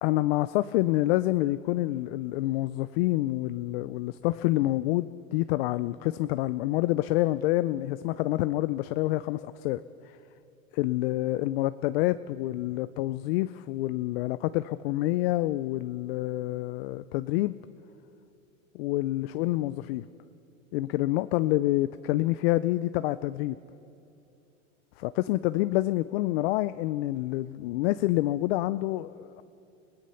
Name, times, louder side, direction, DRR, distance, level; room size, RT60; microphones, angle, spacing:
voice 1, 0.0-10.2 10.7-17.6 18.7-20.1 20.7-23.6 25.0-29.4, left 17 dB, 45° left, 14 dB, 0.5 m, -27 dB
30.0 x 17.5 x 5.7 m, 2.7 s
supercardioid pair, 135°, 42 cm